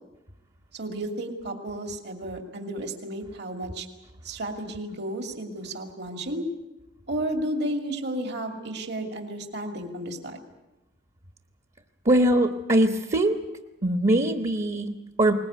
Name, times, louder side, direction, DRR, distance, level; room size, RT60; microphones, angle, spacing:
voice 1, 0.7-3.9 4.2-6.4 7.1-10.4, right 1 dB, 60° right, 4 dB, 2.5 m, -32 dB
voice 2, 12.0-13.4 13.8-15.3, right 1 dB, 40° right, 6 dB, 1.2 m, -22 dB
21.0 x 20.0 x 9.4 m, 1.0 s
head